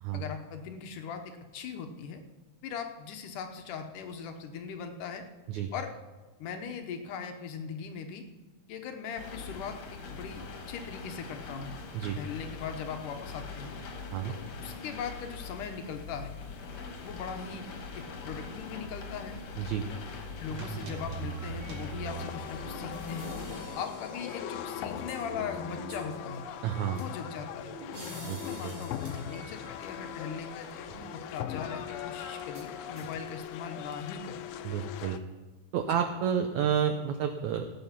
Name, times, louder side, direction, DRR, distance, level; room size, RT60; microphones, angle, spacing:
voice 1, 0.1-2.2 2.6-5.2 5.7-5.9 6.4-8.2 8.7-9.8 10.1-11.7 12.2-13.7 14.3-16.3 17.0-17.6 17.9-19.4 20.4-23.3 23.7-26.4 26.9-27.8 28.4-30.7 31.1-34.5 35.9-36.0, left 6 dB, 70° left, 5 dB, 2.3 m, -40 dB
sound 1, 9.2-23.7, left 4 dB, 55° left, 2.4 m, -42 dB
voice 2, 19.6-19.9 26.6-27.0 28.2-28.8 34.6-35.2 35.7-37.7, right 8 dB, 80° right, 6 dB, 1.6 m, -30 dB
sound 2, 20.5-33.1, right 3 dB, 50° right, 3.5 m, -44 dB
sound 3, 22.0-35.2, left 10 dB, 90° left, 2.5 m, -40 dB
17.0 x 8.7 x 5.7 m, 1.3 s
omnidirectional pair, 4.2 m